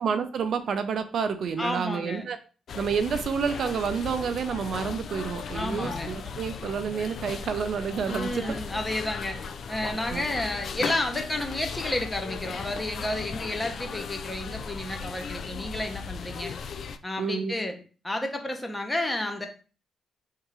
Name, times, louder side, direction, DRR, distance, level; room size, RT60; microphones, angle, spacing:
voice 1, 0.0-2.4 2.8-8.6 10.1-10.2 17.2-17.5, right 6 dB, 60° right, 9 dB, 0.6 m, -29 dB
voice 2, 1.6-2.2 5.5-6.1 8.1-9.4 9.7-16.5 17.0-17.7 18.0-19.5, left 1 dB, 15° left, 4 dB, 1.0 m, -31 dB
sound 1, 2.7-17.0, left 6 dB, 60° left, 0.4 m, -37 dB
3.7 x 2.8 x 4.7 m, 0.36 s
cardioid pair, 100°, 0 cm